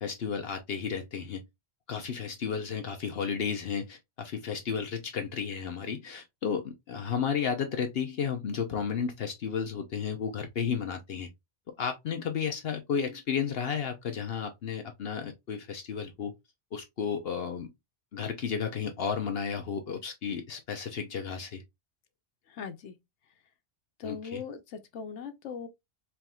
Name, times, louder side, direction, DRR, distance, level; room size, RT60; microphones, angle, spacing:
voice 1, 0.0-1.4 1.9-11.3 11.8-16.3 16.7-17.7 18.1-21.6 24.0-24.4, left 7 dB, 65° left, 0.9 m, -33 dB
voice 2, 22.5-22.9 24.0-25.7, left 6 dB, 85° left, 1.1 m, -39 dB
4.5 x 3.5 x 2.3 m
omnidirectional pair, 1.2 m